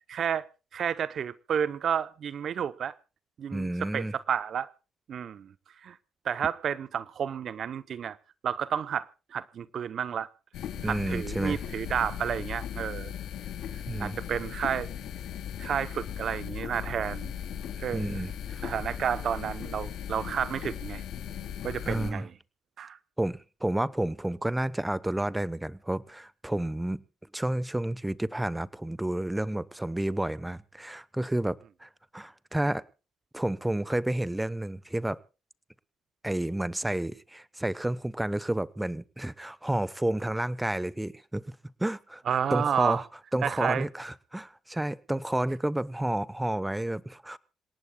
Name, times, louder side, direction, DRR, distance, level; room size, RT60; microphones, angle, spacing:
voice 1, 0.1-0.5 0.7-2.9 3.4-4.7 5.1-5.5 5.8-6.0 6.2-8.2 8.4-10.3 10.8-13.2 14.0-14.9 15.6-17.3 17.8-18.2 18.6-21.0 21.6-22.3 22.8-23.0 42.3-43.0 43.4-43.8, right 8 dB, 60° right, 0.7 m, -31 dB
voice 2, 3.5-4.1 10.8-11.8 13.9-14.2 17.9-18.6 21.8-22.3 23.2-27.0 27.3-32.8 33.3-35.2 36.2-42.2 42.5-43.0 43.3-47.4, right 1 dB, 10° right, 0.9 m, -31 dB
sound 1, 10.5-22.1, left 9 dB, 80° left, 3.0 m, -37 dB
27.0 x 18.0 x 2.3 m
cardioid pair, 90°, 0 cm